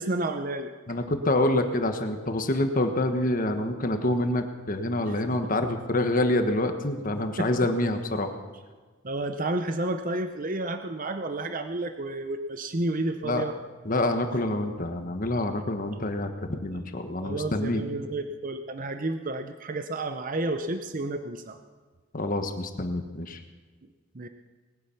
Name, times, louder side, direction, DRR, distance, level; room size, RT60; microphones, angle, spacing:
voice 1, 0.0-0.7 5.1-5.2 7.4-7.7 9.0-13.6 15.9-16.0 17.2-21.6 24.1-24.3, right 2 dB, 40° right, 8 dB, 0.7 m, -31 dB
voice 2, 0.9-8.3 13.2-13.4 13.8-17.8 22.1-23.4, left 1 dB, 40° left, 6 dB, 1.3 m, -27 dB
19.5 x 10.0 x 7.0 m, 1.4 s
head